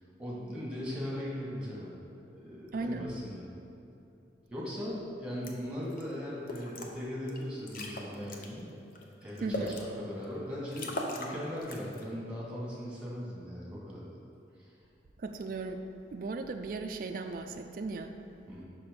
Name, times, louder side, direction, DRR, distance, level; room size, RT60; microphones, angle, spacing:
voice 1, 0.2-2.0 2.3-3.5 4.5-8.7 9.2-14.1 14.6-14.7 18.5-18.6, equal, 5° right, -6 dB, 1.6 m, -39 dB
voice 2, 2.7-3.1 9.4-9.8 15.2-15.8 16.1-18.1, right 3 dB, 50° right, 5 dB, 0.3 m, -36 dB
sound 1, 5.4-5.5 5.8-6.0 6.5-6.9 7.3-7.4 7.7-8.5 9.0-9.8 10.3-10.4 10.7-11.3 11.6-12.0, left 1 dB, 50° left, 0.7 m, -38 dB
5.9 x 5.9 x 5.2 m, 2.7 s
head